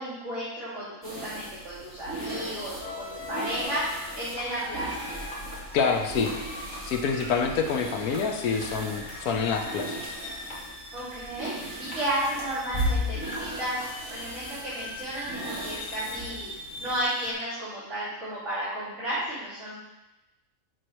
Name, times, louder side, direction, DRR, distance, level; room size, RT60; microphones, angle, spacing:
voice 1, 0.0-5.1 10.9-11.5 11.8-13.8 14.1-16.5 16.8-19.8, right 1 dB, 55° right, -10 dB, 2.5 m, -33 dB
sound 1, 1.0-17.0, equal, 10° right, 2.6 m, -37 dB
sound 2, 2.8-17.3, left 1 dB, 5° left, 1.4 m, -41 dB
sound 3, 4.3-13.9, left 1 dB, 35° left, 1.7 m, -45 dB
voice 2, 5.7-6.3 6.8-10.1, left 5 dB, 90° left, 4 dB, 1.3 m, -27 dB
10.5 x 4.8 x 3.1 m, 1.0 s
omnidirectional pair, 1.5 m